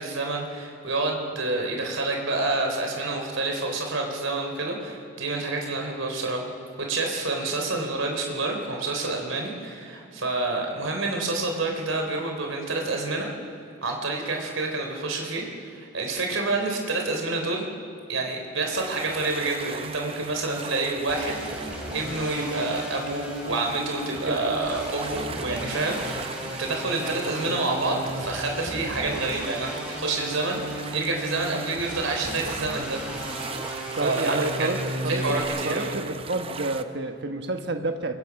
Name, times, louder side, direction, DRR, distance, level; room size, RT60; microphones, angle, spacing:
voice 1, 0.0-6.4 6.9-13.3 13.8-17.7 18.1-21.4 21.9-33.0 34.0-34.7 35.1-36.0, right 2 dB, 75° right, 2 dB, 3.7 m, -28 dB
sound 1, 18.7-36.8, right 4 dB, 25° right, 0.7 m, -39 dB
sound 2, 21.1-35.4, right 1 dB, 5° right, 4.6 m, -35 dB
voice 2, 34.0-35.4 35.6-38.2, right 2 dB, 55° right, 5 dB, 1.5 m, -29 dB
28.5 x 23.0 x 6.1 m, 2.5 s
head